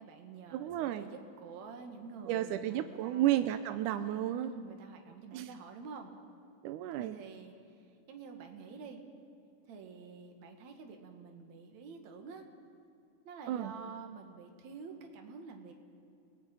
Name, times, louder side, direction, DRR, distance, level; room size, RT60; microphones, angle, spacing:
voice 1, 0.0-3.5 4.4-6.2 7.0-9.0 9.6-12.5 13.2-15.7, right 5 dB, 60° right, 4 dB, 3.1 m, -48 dB
voice 2, 0.5-1.1 2.3-4.5 5.3-5.5 6.6-7.2 13.5-13.7, right 12 dB, 80° right, 9 dB, 2.2 m, -32 dB
30.0 x 20.0 x 5.4 m, 2.6 s
omnidirectional pair, 3.7 m